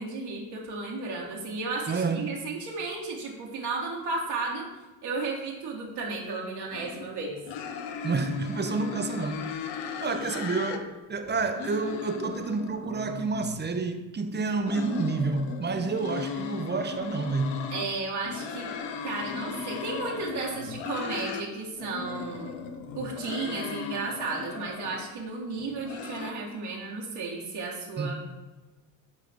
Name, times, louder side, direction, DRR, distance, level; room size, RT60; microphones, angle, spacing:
voice 1, 0.0-4.6 5.0-7.4 17.7-18.7 19.0-22.6 22.9-28.1, right 3 dB, 55° right, 1.4 m, -33 dB
voice 2, 1.9-2.4 8.0-9.6 10.0-17.6 28.0-28.1, right 4 dB, 20° right, 0.7 m, -29 dB
sound 1, 6.7-7.1 7.5-10.8 11.1-13.7 14.4-17.9 18.2-21.4 21.8-25.1 25.6-26.3, left 7 dB, 60° left, 0.8 m, -37 dB
8.2 x 3.8 x 3.5 m
hypercardioid pair, 60°, 49 cm